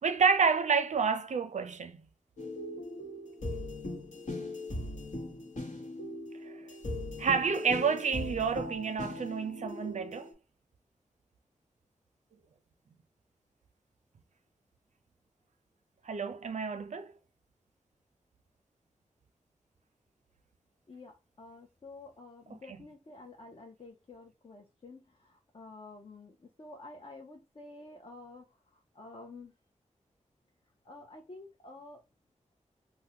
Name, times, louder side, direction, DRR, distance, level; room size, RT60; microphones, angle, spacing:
voice 1, 0.0-2.0 6.5-6.6 7.2-10.3 16.1-17.1 22.5-22.6, right 5 dB, 65° right, 0.4 m, -29 dB
sound 1, 2.4-10.3, left 1 dB, 75° left, 1.1 m, -39 dB
voice 2, 20.9-29.5 30.8-32.0, left 2 dB, 45° left, 0.6 m, -50 dB
3.5 x 2.1 x 2.8 m
wide cardioid pair, 95°, 13 cm